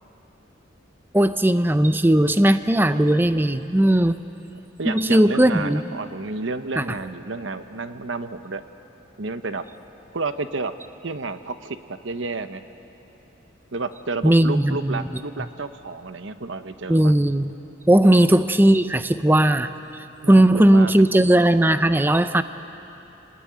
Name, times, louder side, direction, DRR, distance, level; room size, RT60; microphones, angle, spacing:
voice 1, 1.1-4.2 4.9-5.8 6.8-6.9 14.2-15.1 16.9-17.5 17.9-19.7 20.3-22.4, right 1 dB, 10° right, 11 dB, 0.6 m, -17 dB
voice 2, 4.8-8.6 9.2-9.6 10.1-10.7 11.0-12.6 13.7-17.1 18.0-18.1 20.2-21.2, right 3 dB, 70° right, 10 dB, 1.0 m, -31 dB
28.0 x 20.0 x 9.4 m, 3.0 s
head